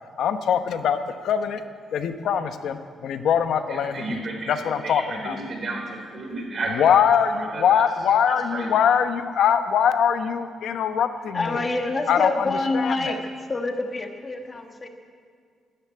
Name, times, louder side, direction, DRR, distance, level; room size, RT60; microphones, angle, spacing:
voice 1, 0.2-1.6 1.9-4.2 4.5-5.4 6.7-11.6 12.1-13.2, left 8 dB, 65° left, 9 dB, 1.0 m, -22 dB
voice 2, 3.7-4.5 4.8-6.8 7.4-7.8 8.3-8.7, right 3 dB, 40° right, 1 dB, 3.7 m, -32 dB
voice 3, 11.3-13.2 13.5-14.9, left 2 dB, 25° left, 4 dB, 1.5 m, -27 dB
13.0 x 12.0 x 9.5 m, 2.2 s
cardioid pair, 150°, 0 cm